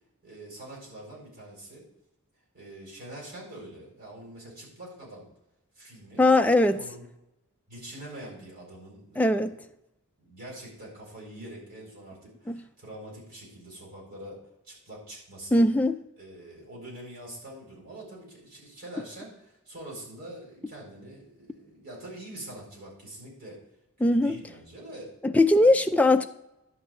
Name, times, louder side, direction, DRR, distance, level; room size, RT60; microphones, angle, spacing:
voice 1, 0.2-1.8 2.5-5.3 5.7-7.1 7.7-9.4 10.2-15.6 16.2-23.6 24.0-25.1 25.5-25.8, right 1 dB, 45° right, 4.4 m, -44 dB
voice 2, 6.2-6.8 9.2-9.6 12.5-12.6 15.5-15.9 24.0-24.4 25.2-26.3, left 2 dB, 5° left, 0.4 m, -20 dB
11.0 x 4.0 x 7.6 m
head